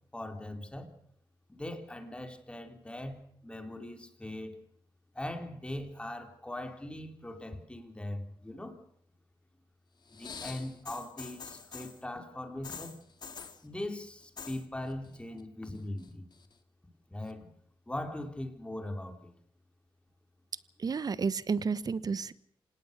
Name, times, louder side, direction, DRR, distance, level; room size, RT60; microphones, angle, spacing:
voice 1, 0.1-0.9 1.5-4.6 5.1-8.8 10.1-13.0 13.6-16.2 17.1-17.5 17.9-19.3, left 1 dB, 10° left, 5 dB, 3.6 m, -40 dB
sound 1, 10.1-12.0 12.6-13.6 14.2-14.6 14.9-15.4 15.7-16.5 17.3-17.4, left 6 dB, 55° left, 2.1 m, -45 dB
voice 2, 20.8-22.3, right 5 dB, 45° right, 16 dB, 1.1 m, -31 dB
26.0 x 19.0 x 6.7 m, 0.68 s
cardioid pair, 95°, 9 cm